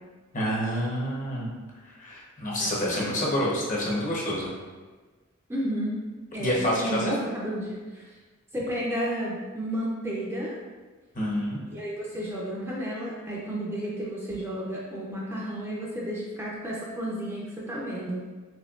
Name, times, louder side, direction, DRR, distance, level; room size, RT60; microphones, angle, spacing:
voice 1, 0.3-1.5 2.0-4.5 6.4-7.2 11.1-11.6, equal, 35° left, -4 dB, 0.9 m, -28 dB
voice 2, 2.6-3.0 5.5-5.9 6.3-6.5 6.8-8.0 8.5-10.5 11.7-18.2, equal, 10° right, -5 dB, 0.5 m, -32 dB
4.3 x 3.2 x 2.4 m, 1.3 s
head